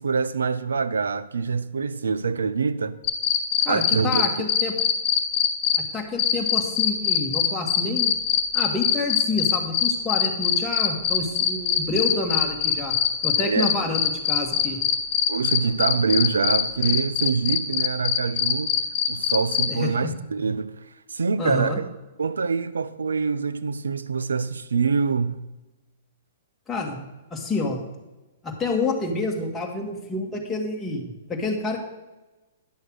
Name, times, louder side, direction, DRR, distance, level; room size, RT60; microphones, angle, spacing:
voice 1, 0.0-3.0 3.7-4.5 13.4-13.7 15.3-18.8 19.1-20.7 21.1-21.8 22.2-25.4, right 5 dB, 85° right, 0.6 m, -25 dB
sound 1, 3.0-5.8 6.2-19.6, left 9 dB, 40° left, 1.5 m, -21 dB
voice 2, 3.7-4.7 5.9-8.1 8.5-13.0 13.2-14.8 19.7-20.1 21.4-21.8 26.7-27.0 27.3-27.8 28.4-31.8, left 3 dB, 10° left, 2.0 m, -28 dB
10.5 x 6.4 x 6.3 m
hypercardioid pair, 120°, 0 cm